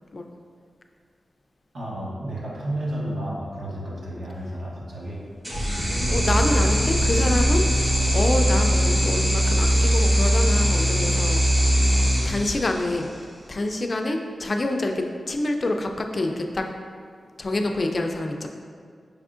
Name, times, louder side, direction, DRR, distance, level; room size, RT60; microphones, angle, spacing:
voice 1, 1.7-5.2, right 1 dB, 75° right, -6 dB, 1.1 m, -31 dB
sound 1, 5.4-13.0, equal, 20° right, 0.9 m, -21 dB
sound 2, 5.5-11.2, equal, 40° right, 1.2 m, -32 dB
voice 2, 6.1-7.6 8.1-11.4 12.3-13.1 13.5-16.7 17.4-18.5, left 2 dB, 45° left, 4 dB, 0.3 m, -26 dB
4.7 x 3.5 x 2.4 m, 2.1 s
wide cardioid pair, 85°, 0 cm